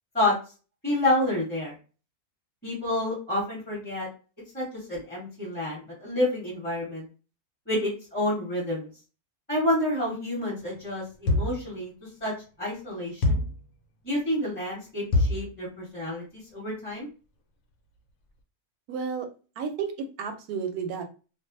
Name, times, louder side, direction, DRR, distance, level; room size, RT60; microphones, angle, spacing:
voice 1, 0.8-1.7 2.6-4.1 4.5-7.1 7.7-8.9 9.5-11.9 12.2-13.4 14.0-16.2 16.5-17.1, left 1 dB, 5° left, -5 dB, 1.0 m, -29 dB
sound 1, 11.3-11.7 13.2-13.6 15.1-15.5, left 2 dB, 75° left, 1.0 m, -24 dB
voice 2, 18.9-19.3 19.6-21.0, right 6 dB, 85° right, 6 dB, 1.1 m, -32 dB
2.5 x 2.2 x 2.6 m, 0.34 s
omnidirectional pair, 1.5 m